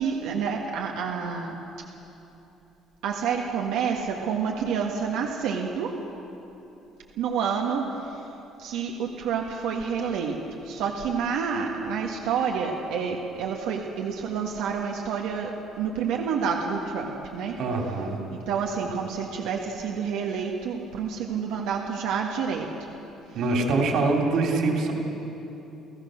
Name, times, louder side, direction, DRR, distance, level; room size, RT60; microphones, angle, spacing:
voice 1, 0.0-1.6 3.0-6.0 7.2-8.3 8.6-17.6 18.3-22.9 23.3-23.4, right 6 dB, 85° right, 0 dB, 1.7 m, -29 dB
voice 2, 17.6-18.2 23.3-24.9, right 3 dB, 55° right, 1 dB, 3.1 m, -24 dB
30.0 x 15.0 x 6.5 m, 2.9 s
cardioid pair, 175°, 0 cm